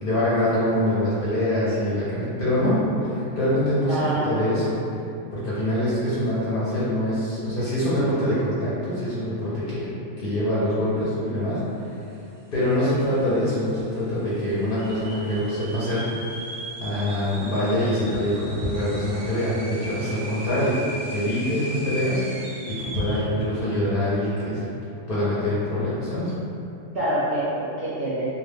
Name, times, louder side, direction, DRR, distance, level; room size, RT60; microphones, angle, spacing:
voice 1, 0.0-4.8 5.3-9.9 10.2-11.9 12.5-16.1 16.8-20.8 21.1-24.7 25.1-26.3, left 1 dB, 55° left, -10 dB, 0.6 m, -24 dB
voice 2, 3.9-4.3 26.9-28.3, right 1 dB, 60° right, -10 dB, 0.6 m, -26 dB
sound 1, 12.4-12.5 12.7-13.3 13.8-13.9 14.6-23.3, right 1 dB, 90° right, 1.0 m, -38 dB
2.2 x 2.1 x 3.3 m, 2.7 s
omnidirectional pair, 1.4 m